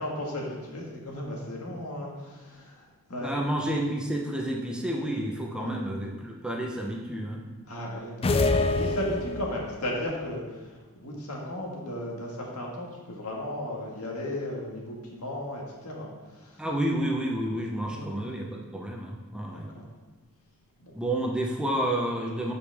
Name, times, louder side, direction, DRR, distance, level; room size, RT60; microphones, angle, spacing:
voice 1, 0.0-3.5 5.6-5.7 7.7-8.5 8.7-16.6 17.8-18.2 19.5-19.8 20.8-20.9, left 1 dB, 80° left, -2 dB, 1.8 m, -35 dB
voice 2, 3.1-7.4 16.6-19.6 20.9-22.5, right 1 dB, 5° right, -1 dB, 0.8 m, -30 dB
sound 1, 8.2-9.8, left 2 dB, 25° left, 0.3 m, -25 dB
11.5 x 5.2 x 3.5 m, 1.3 s
head